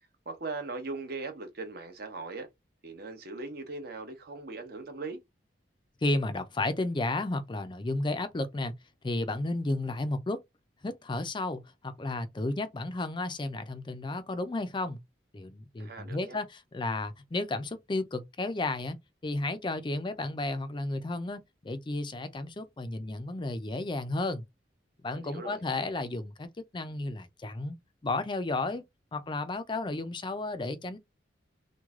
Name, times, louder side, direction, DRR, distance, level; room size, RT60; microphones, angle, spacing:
voice 1, 0.3-2.5 2.8-5.2 15.8-16.4 25.1-25.6, right 3 dB, 55° right, 0.9 m, -39 dB
voice 2, 6.0-8.7 9.0-10.4 10.8-15.0 15.3-19.0 19.2-24.4 25.0-26.5 26.7-27.8 28.0-28.8 29.1-31.0, left 2 dB, 25° left, 0.4 m, -33 dB
3.1 x 2.2 x 3.5 m
head